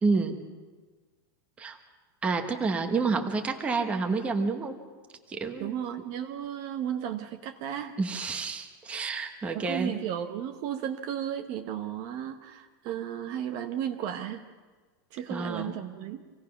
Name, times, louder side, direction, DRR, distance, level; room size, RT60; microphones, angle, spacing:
voice 1, 0.0-0.5 1.6-1.8 2.2-4.8 5.3-5.8 8.0-9.9 15.3-15.7, right 4 dB, 10° right, 5 dB, 1.1 m, -29 dB
voice 2, 5.6-8.0 9.5-14.5 15.1-16.2, right 10 dB, 35° right, 6 dB, 0.9 m, -34 dB
26.5 x 17.5 x 5.9 m, 1.4 s
supercardioid pair, 175°, 12 cm